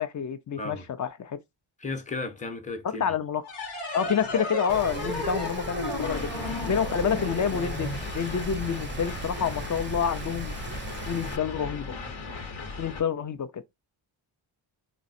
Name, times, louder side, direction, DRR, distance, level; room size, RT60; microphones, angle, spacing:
voice 1, 0.0-1.4 3.0-3.4 3.9-6.3 6.7-10.6 11.1-12.0 12.8-13.6, left 7 dB, 40° left, 0.6 m, -28 dB
voice 2, 1.8-3.0, left 3 dB, 15° left, 0.9 m, -34 dB
sound 1, 3.4-8.7, left 1 dB, 85° left, 1.1 m, -34 dB
Rain, 4.7-11.4, right 3 dB, 25° right, 0.5 m, -38 dB
sound 2, 6.0-13.0, left 3 dB, 65° left, 1.1 m, -38 dB
3.8 x 2.1 x 2.6 m
cardioid pair, 55°, 50 cm